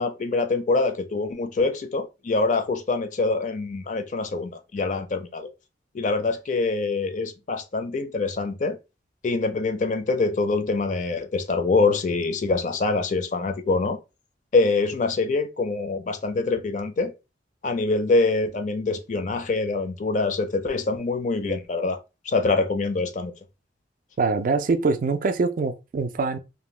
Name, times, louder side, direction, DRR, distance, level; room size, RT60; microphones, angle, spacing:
voice 1, 0.0-5.5 5.9-8.8 9.2-14.0 14.5-17.1 17.6-22.0 22.3-23.3, left 3 dB, 45° left, 0.4 m, -25 dB
voice 2, 24.2-26.4, right 4 dB, 50° right, 0.3 m, -24 dB
2.6 x 2.1 x 3.1 m
head